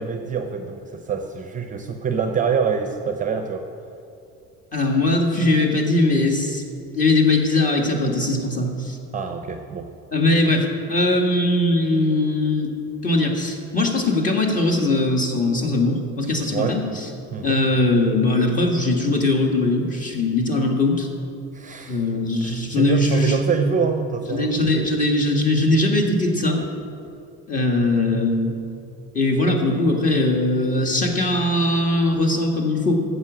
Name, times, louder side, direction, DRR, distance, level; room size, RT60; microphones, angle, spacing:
voice 1, 0.0-3.6 9.1-9.9 16.5-16.8 17.3-17.6 21.5-22.0 22.7-24.9, right 5 dB, 25° right, 5 dB, 0.7 m, -25 dB
voice 2, 4.7-6.6 6.9-9.0 10.1-12.7 13.0-17.1 17.4-21.1 21.9-23.4 24.3-26.6 27.5-28.6 29.1-32.9, left 2 dB, 25° left, 1 dB, 1.8 m, -20 dB
13.5 x 8.2 x 6.2 m, 2.6 s
cardioid pair, 145°, 31 cm